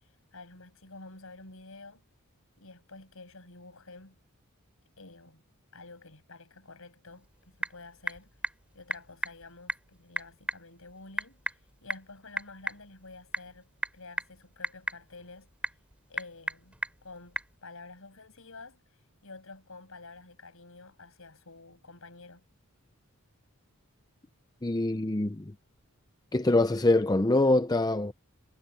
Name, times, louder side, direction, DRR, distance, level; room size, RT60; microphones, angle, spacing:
voice 1, 0.3-2.0 2.6-4.2 5.0-5.4 5.7-8.3 8.7-15.5 16.1-18.8 19.2-22.4, left 3 dB, 65° left, 7.4 m, -49 dB
Typing / Telephone, 7.1-17.6, right 1 dB, 5° right, 3.8 m, -39 dB
voice 2, 24.6-25.4 26.3-28.1, left 2 dB, 15° left, 0.6 m, -24 dB
head